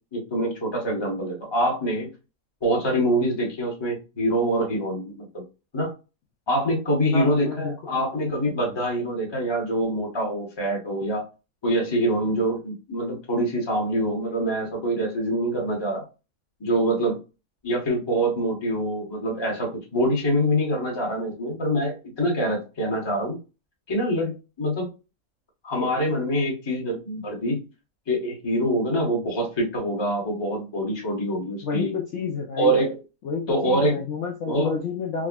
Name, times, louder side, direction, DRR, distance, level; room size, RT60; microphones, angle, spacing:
voice 1, 0.1-2.1 2.6-5.4 5.7-5.9 6.5-11.2 11.6-16.0 16.6-17.2 17.6-23.4 23.9-24.3 24.6-24.9 25.6-27.6 28.1-31.9 32.6-33.0 33.5-34.0 34.5-34.7, right 1 dB, 20° left, -2 dB, 0.8 m, -25 dB
voice 2, 7.1-7.8 31.6-32.8 33.2-35.3, left 5 dB, 65° left, 1 dB, 0.8 m, -29 dB
3.4 x 2.0 x 2.2 m, 0.30 s
omnidirectional pair, 1.6 m